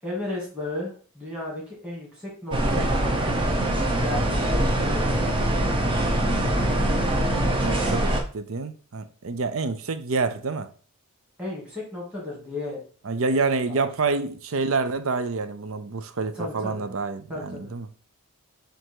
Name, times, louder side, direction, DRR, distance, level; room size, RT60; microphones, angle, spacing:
voice 1, 0.0-3.0 4.0-5.3 11.4-12.8 13.7-13.9 16.2-16.8 17.3-17.7, left 2 dB, 5° right, 2.3 m, -34 dB
sound 1, 2.5-8.2, right 1 dB, 20° right, 0.8 m, -23 dB
voice 2, 7.6-10.7 13.0-17.9, right 4 dB, 65° right, 0.6 m, -27 dB
7.7 x 2.7 x 4.6 m
head